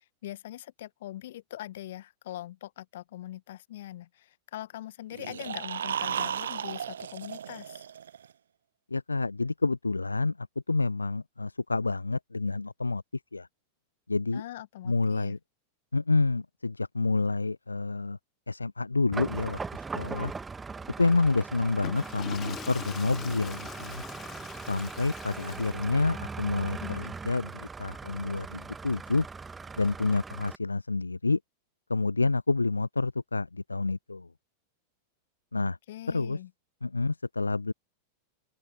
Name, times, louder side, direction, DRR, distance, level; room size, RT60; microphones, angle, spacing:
voice 1, 0.2-7.8 14.3-15.3 26.8-27.1 35.6-36.5, left 14 dB, 55° left, 1.2 m, -42 dB
sound 1, 5.1-8.3, right 8 dB, 65° right, 0.7 m, -34 dB
voice 2, 8.9-10.4 10.7-13.0 13.3-13.5 14.1-14.4 14.8-15.4 15.9-18.2 18.5-20.3 21.0-24.0 24.7-27.5 27.8-29.3 29.8-31.4 31.9-34.3 35.5-35.8 36.1-36.4 36.8-37.7, left 3 dB, 80° left, 0.4 m, -28 dB
sound 2, 19.1-30.5, right 4 dB, 15° right, 1.7 m, -40 dB
Water / Toilet flush, 21.7-26.2, left 10 dB, 30° left, 2.3 m, -44 dB
open air
figure-of-eight pair, 90°, 0 cm